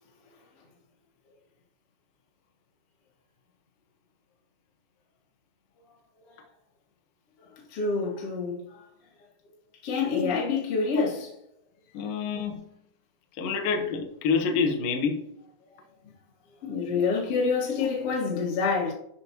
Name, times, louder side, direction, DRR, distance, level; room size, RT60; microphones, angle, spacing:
voice 1, 7.7-8.9 9.8-11.3 16.0-16.1 16.6-18.9, left 4 dB, 55° left, 1.6 m, -27 dB
voice 2, 11.9-12.7 13.4-15.2 17.0-17.1, left 5 dB, 85° left, 1.9 m, -27 dB
12.5 x 5.8 x 3.0 m
omnidirectional pair, 5.9 m